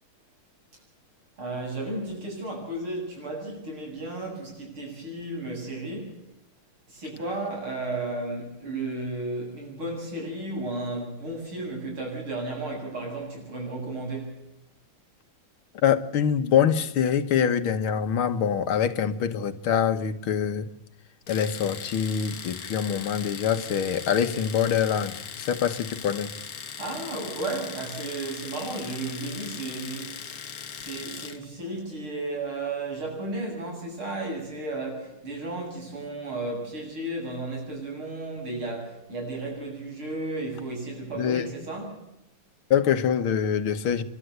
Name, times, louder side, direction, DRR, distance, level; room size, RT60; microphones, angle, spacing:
voice 1, 1.4-6.2 6.9-14.4 26.8-30.3 30.8-42.0, right 2 dB, 85° right, 9.1 m, -33 dB
voice 2, 15.8-20.7 21.3-26.3 41.2-41.4 42.7-44.0, left 8 dB, 80° left, 2.1 m, -24 dB
Domestic sounds home sounds, 21.3-31.4, left 7 dB, 50° left, 1.5 m, -39 dB
29.5 x 12.5 x 7.9 m
omnidirectional pair, 2.3 m